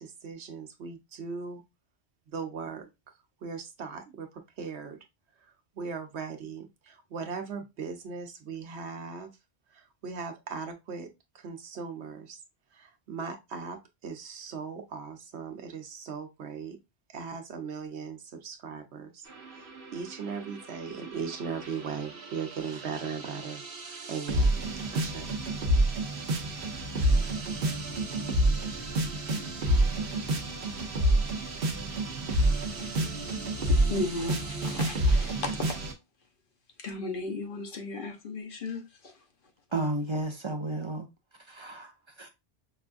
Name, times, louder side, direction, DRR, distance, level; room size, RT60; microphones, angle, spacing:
voice 1, 0.0-1.6 2.3-2.9 3.4-5.0 5.8-9.3 9.7-11.1 11.3-12.4 12.7-16.8 17.1-19.2 19.5-24.5 24.8-25.4, right 5 dB, 85° right, 1.1 m, -38 dB
sound 1, 19.3-35.9, right 1 dB, 60° right, 1.0 m, -29 dB
voice 2, 33.6-35.8 36.8-39.1, left 3 dB, 55° left, 1.0 m, -35 dB
voice 3, 39.7-41.1 41.5-41.9 42.2-42.3, right 2 dB, 35° right, 0.6 m, -32 dB
5.3 x 2.4 x 2.4 m
omnidirectional pair, 1.1 m